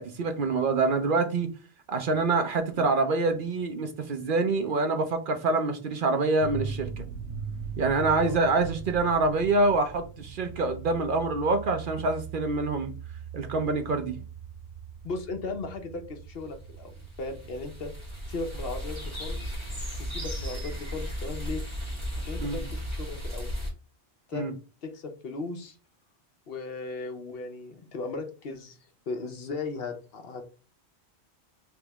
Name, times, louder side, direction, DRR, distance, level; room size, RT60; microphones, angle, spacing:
voice 1, 0.0-1.5 1.9-7.1 7.8-12.9 13.3-14.2 22.4-22.6 24.3-24.5, right 3 dB, 55° right, 0.7 m, -26 dB
sound 1, 6.4-21.4, right 6 dB, 90° right, 0.9 m, -41 dB
voice 2, 15.0-17.9 18.3-19.5 20.0-21.6 22.2-23.5 24.3-24.4 24.8-25.8 26.5-28.8 29.1-30.4, left 3 dB, 65° left, 0.9 m, -37 dB
sound 2, 16.6-23.7, equal, 25° right, 1.9 m, -35 dB
3.5 x 3.0 x 3.4 m
omnidirectional pair, 1.1 m